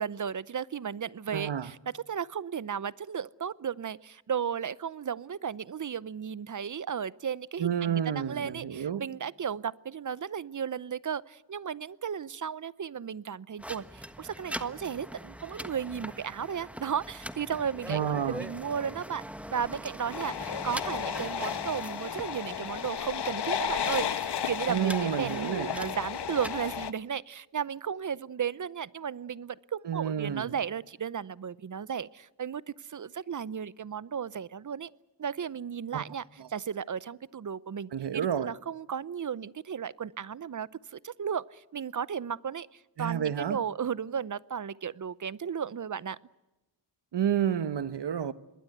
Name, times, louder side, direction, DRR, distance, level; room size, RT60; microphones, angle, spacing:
voice 1, 0.0-1.8 2.1-18.0 18.3-19.2 19.5-34.9 35.2-46.2, right 7 dB, 45° right, 0.7 m, -34 dB
voice 2, 1.3-1.7 7.6-9.0 17.9-18.4 24.7-25.7 29.8-30.5 35.9-36.0 36.4-36.5 37.9-38.5 43.0-43.6 47.1-48.3, right 9 dB, 65° right, 1.3 m, -30 dB
sound 1, 13.6-26.6, equal, 5° right, 1.4 m, -42 dB
sound 2, 20.1-26.9, left 8 dB, 65° left, 1.1 m, -33 dB
26.0 x 20.5 x 8.0 m
cardioid pair, 60°, 44 cm